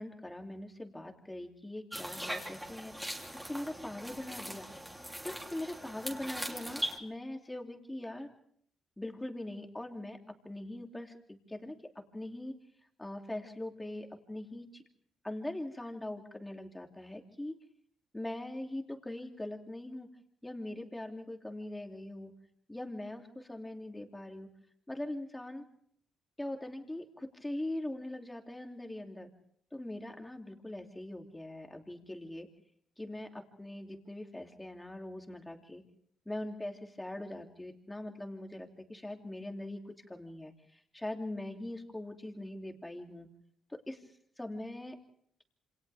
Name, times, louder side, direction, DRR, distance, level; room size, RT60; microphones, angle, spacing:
voice 1, 0.0-2.9 3.3-4.7 5.2-8.3 9.0-10.2 10.4-11.7 12.1-12.5 13.0-14.8 15.2-17.6 18.1-20.1 20.4-22.3 22.7-24.5 24.9-25.6 26.4-29.3 29.7-32.5 33.0-35.8 36.2-43.3 43.7-44.0 44.4-45.0, left 1 dB, 10° left, 3 dB, 2.9 m, -41 dB
sound 1, 1.9-7.0, equal, 5° right, 3.2 m, -40 dB
27.5 x 27.0 x 3.5 m, 0.65 s
cardioid pair, 90°, 0 cm